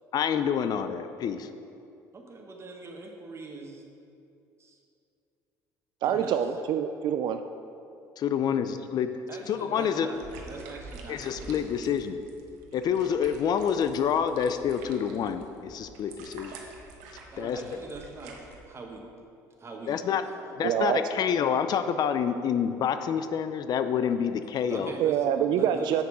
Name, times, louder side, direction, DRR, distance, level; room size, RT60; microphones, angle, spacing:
voice 1, 0.1-1.5 8.2-9.1 9.5-10.1 11.1-12.2 12.7-16.6 17.4-17.6 19.9-20.2 20.6-24.9, left 8 dB, 55° left, 10 dB, 0.5 m, -27 dB
voice 2, 2.1-3.8 4.6-4.8 6.0-6.3 9.3-11.6 17.3-18.4 18.6-19.0 19.6-20.8 24.4-26.0, right 3 dB, 35° right, 1 dB, 1.4 m, -42 dB
voice 3, 6.0-7.4 20.6-21.0 25.0-26.0, right 9 dB, 60° right, 8 dB, 0.4 m, -26 dB
sound 1, 10.1-18.6, right 4 dB, 90° right, 0.9 m, -48 dB
7.2 x 6.5 x 4.8 m, 2.6 s
supercardioid pair, 80°, 8 cm